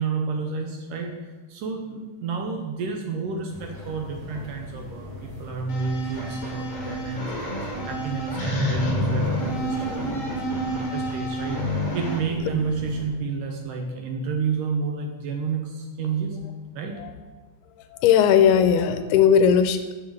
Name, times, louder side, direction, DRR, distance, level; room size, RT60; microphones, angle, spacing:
voice 1, 0.0-7.3 7.6-11.6 11.9-16.4 16.7-17.0, right 4 dB, 75° right, 3 dB, 2.0 m, -30 dB
sound 1, 3.5-13.1, left 1 dB, 30° right, 1.9 m, -39 dB
sound 2, 5.7-12.2, equal, 45° left, 1.0 m, -28 dB
voice 2, 17.9-19.9, left 8 dB, 80° left, 9 dB, 2.4 m, -18 dB
8.7 x 7.0 x 8.0 m, 1.3 s
omnidirectional pair, 4.9 m